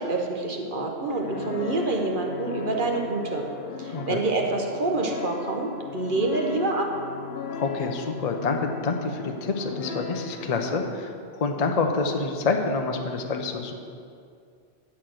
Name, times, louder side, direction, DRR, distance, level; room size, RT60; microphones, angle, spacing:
voice 1, 0.0-3.5 3.8-6.9, right 2 dB, 50° right, 1 dB, 1.0 m, -27 dB
sound 1, 1.1-10.9, left 4 dB, 60° left, 0.9 m, -37 dB
voice 2, 7.5-13.7, left 4 dB, 45° left, 4 dB, 0.6 m, -27 dB
9.9 x 4.3 x 7.6 m, 2.3 s
omnidirectional pair, 1.2 m